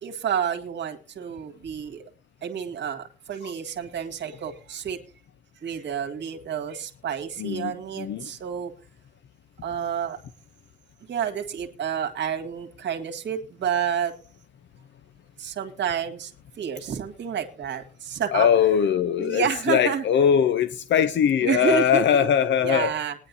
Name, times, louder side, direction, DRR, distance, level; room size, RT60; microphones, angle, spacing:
voice 1, 0.0-2.0 2.4-5.0 5.6-8.7 9.6-10.2 11.1-14.1 15.4-16.3 16.6-18.5 19.2-20.0 21.4-22.3 22.6-23.1, right 8 dB, 75° right, 1.9 m, -29 dB
voice 2, 7.4-8.3 18.3-22.9, left 8 dB, 80° left, 0.7 m, -21 dB
20.0 x 10.0 x 2.7 m
wide cardioid pair, 155°, 19 cm